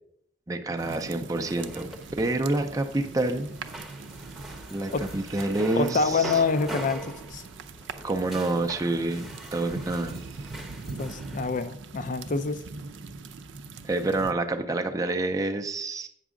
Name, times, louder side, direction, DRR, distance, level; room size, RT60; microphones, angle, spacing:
voice 1, 0.5-1.9 2.2-3.5 4.7-6.4 8.0-10.2 13.8-16.1, right 2 dB, 20° right, 4 dB, 0.5 m, -28 dB
sound 1, 0.8-14.3, right 4 dB, 80° right, 0.5 m, -42 dB
sound 2, 1.4-11.6, right 1 dB, ahead, 0.8 m, -42 dB
voice 2, 5.8-7.4 11.0-12.6, left 4 dB, 45° left, 12 dB, 0.4 m, -26 dB
8.2 x 6.0 x 3.7 m, 0.72 s
head